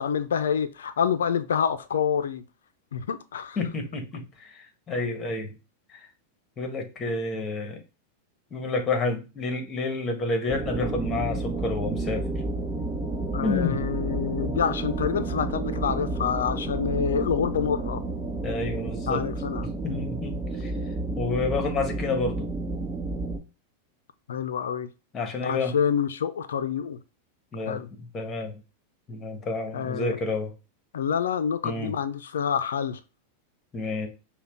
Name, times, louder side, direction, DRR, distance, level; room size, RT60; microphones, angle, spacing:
voice 1, 0.0-2.4 2.9-3.6 13.3-18.0 19.1-19.7 24.3-24.9 25.4-27.0 27.7-27.9 29.7-30.2 30.9-33.0, left 7 dB, 85° left, 0.5 m, -27 dB
voice 2, 3.6-5.5 5.9-6.1 6.6-7.8 8.5-12.4 13.4-13.8 18.4-19.3 19.6-20.7 21.1-22.5 25.1-25.7 27.5-28.6 29.1-30.5 31.6-32.0 33.7-34.1, left 3 dB, 30° left, 1.3 m, -29 dB
sound 1, 10.5-23.4, right 2 dB, 20° right, 1.2 m, -31 dB
5.6 x 2.3 x 3.6 m
hypercardioid pair, 110°, 0 cm